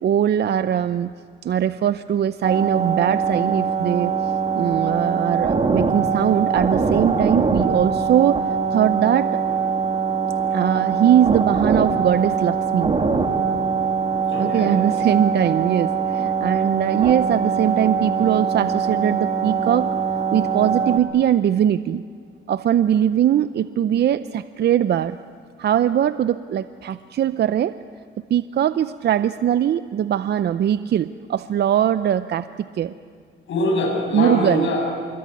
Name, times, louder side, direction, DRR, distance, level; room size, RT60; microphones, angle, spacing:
voice 1, 0.0-1.1 1.4-8.4 8.7-9.4 10.5-12.9 14.4-22.0 22.5-25.2 25.6-27.8 28.3-32.9 34.1-34.7, right 10 dB, 55° right, 13 dB, 0.6 m, -21 dB
sound 1, 2.4-21.0, right 5 dB, 30° right, 2.2 m, -22 dB
voice 2, 14.3-14.8 33.5-34.8, left 2 dB, 70° left, -1 dB, 7.8 m, -23 dB
25.0 x 22.0 x 9.4 m, 2.2 s
cardioid pair, 90°, 20 cm